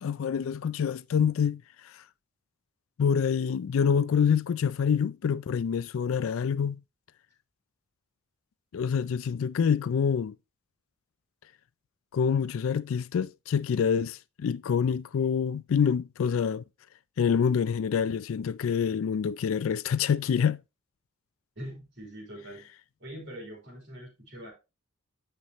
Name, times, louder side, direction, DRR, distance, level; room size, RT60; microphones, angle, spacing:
voice 1, 0.0-1.6 1.9-2.0 3.0-6.8 8.7-10.4 12.1-16.6 17.2-20.6, left 7 dB, 70° left, 0.3 m, -26 dB
voice 2, 21.6-22.7 23.0-24.5, equal, 55° right, 3.8 m, -43 dB
9.6 x 5.8 x 3.0 m
head